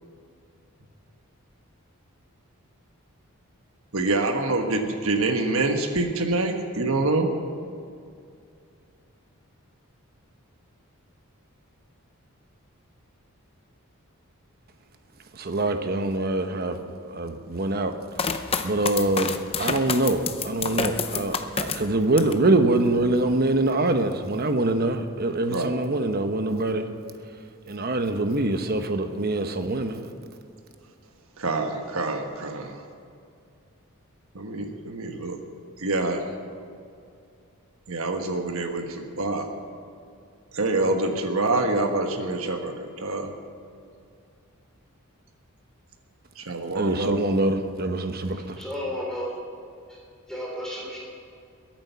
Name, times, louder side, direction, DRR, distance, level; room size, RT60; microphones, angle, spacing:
voice 1, 3.9-7.3 25.5-25.8 31.4-32.8 34.3-35.4 35.8-36.3 37.9-39.5 40.5-43.3 46.4-47.2, right 2 dB, 65° right, 1.4 m, -26 dB
voice 2, 15.3-17.9 18.2-26.9 27.7-30.0 46.7-48.6, right 2 dB, 45° right, 1.0 m, -24 dB
sound 1, 18.2-22.5 22.9-23.5, left 5 dB, 25° left, 0.6 m, -29 dB
voice 3, 48.3-49.3 49.9-50.0 50.3-51.0, left 1 dB, 5° left, 3.4 m, -33 dB
22.0 x 8.9 x 5.7 m
head